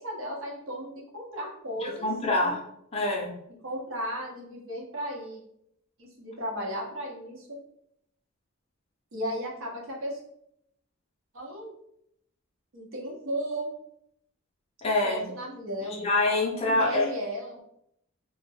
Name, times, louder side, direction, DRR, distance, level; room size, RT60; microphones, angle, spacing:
voice 1, 0.0-2.1 3.6-5.4 6.0-7.6 9.1-10.2 11.3-11.7 12.7-13.7 15.0-16.1 16.7-17.6, equal, 70° right, -2 dB, 0.7 m, -35 dB
voice 2, 1.8-2.6 2.9-3.3 14.8-15.2 15.9-17.1, left 2 dB, 30° left, -1 dB, 0.5 m, -26 dB
2.1 x 2.1 x 3.3 m, 0.77 s
head